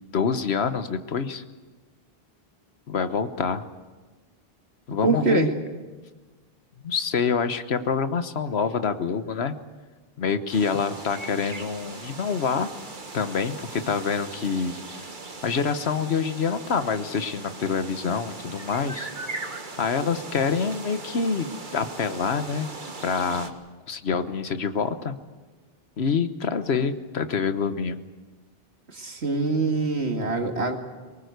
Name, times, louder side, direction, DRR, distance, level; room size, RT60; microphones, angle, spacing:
voice 1, 0.1-1.4 2.9-3.6 4.9-5.5 6.8-9.5 10.2-12.7 13.1-15.0 15.4-19.1 19.8-21.5 21.7-22.7 23.0-23.5 23.9-25.2 26.0-28.0, left 5 dB, 80° left, 11 dB, 1.3 m, -26 dB
voice 2, 5.0-5.5 28.9-30.8, right 3 dB, 90° right, 4 dB, 2.4 m, -24 dB
sound 1, 10.5-23.5, right 3 dB, 50° right, 1.7 m, -39 dB
23.5 x 19.5 x 8.1 m, 1.3 s
omnidirectional pair, 1.1 m